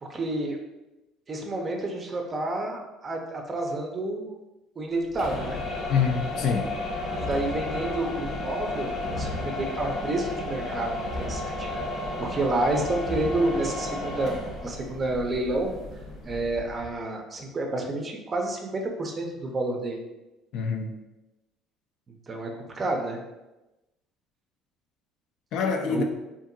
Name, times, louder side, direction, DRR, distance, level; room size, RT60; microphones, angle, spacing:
voice 1, 0.0-0.6 1.3-4.3 4.8-5.6 7.1-11.8 12.2-14.3 14.6-15.8 16.2-20.0 22.3-23.2 25.9-26.0, right 2 dB, 30° right, 2 dB, 0.5 m, -29 dB
sound 1, 5.1-17.0, left 2 dB, 45° left, 0.7 m, -33 dB
voice 2, 5.9-6.7 20.5-21.0 25.5-26.0, left 6 dB, 65° left, 4 dB, 0.4 m, -25 dB
2.7 x 2.5 x 2.6 m, 1.0 s
supercardioid pair, 100°, 0 cm